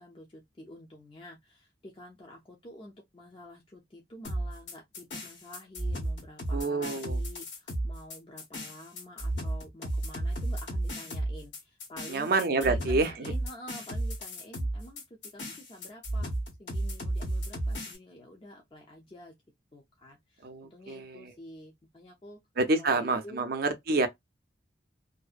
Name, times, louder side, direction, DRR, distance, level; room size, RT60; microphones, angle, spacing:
voice 1, 0.0-12.3 12.6-16.3 16.6-19.3 19.7-22.4 22.8-23.5, left 1 dB, 30° left, 0.5 m, -49 dB
sound 1, 4.2-18.0, right 1 dB, 85° left, 1.4 m, -33 dB
voice 2, 6.5-7.2 12.1-13.3 20.4-21.3 22.6-24.1, right 3 dB, 55° right, 0.5 m, -28 dB
2.6 x 2.0 x 2.4 m
head